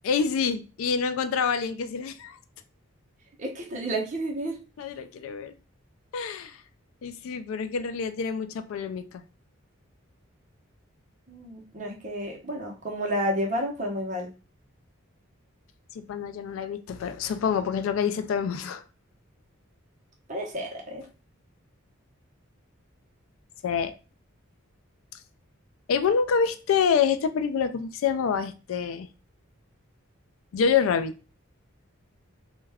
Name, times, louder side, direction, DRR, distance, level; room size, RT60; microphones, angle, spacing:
voice 1, 0.0-2.4 4.8-5.5 6.1-6.6 7.0-9.2 15.9-18.8 23.6-23.9 25.9-29.1 30.5-31.1, left 6 dB, 75° left, 11 dB, 0.3 m, -27 dB
voice 2, 3.4-4.6 11.3-14.3 20.3-21.0, equal, 35° right, -1 dB, 0.7 m, -31 dB
2.3 x 2.2 x 3.3 m, 0.32 s
head